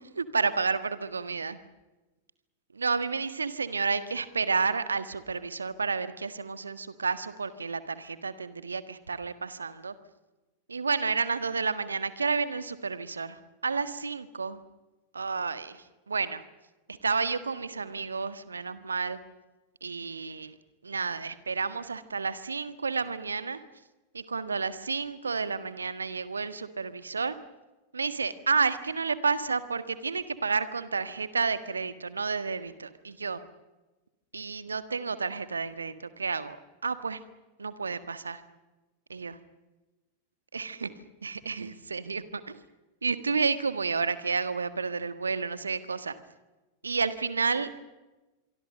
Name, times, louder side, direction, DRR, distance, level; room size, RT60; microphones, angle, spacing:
voice 1, 0.2-1.6 2.8-9.9 10.7-14.6 15.1-16.4 17.0-19.2 19.8-20.5 20.8-23.6 24.1-27.4 27.9-33.4 34.3-36.6 36.8-37.2 37.6-38.4 39.1-39.4 40.5-40.9 41.2-42.6 43.0-46.1 46.8-47.8, right 4 dB, 75° right, 13 dB, 1.6 m, -31 dB
26.0 x 24.0 x 6.6 m, 1.1 s
figure-of-eight pair, 90°, 0 cm